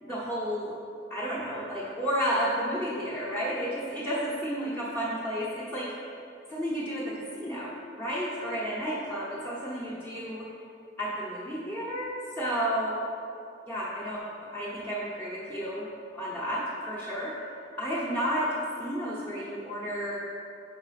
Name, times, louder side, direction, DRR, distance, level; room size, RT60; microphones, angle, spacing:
voice 1, 0.0-0.7 1.1-5.9 6.5-7.7 8.0-10.4 11.0-13.0 13.7-17.3 17.8-18.5 18.8-20.2, equal, 10° left, -9 dB, 0.9 m, -32 dB
4.9 x 4.7 x 5.8 m, 2.7 s
head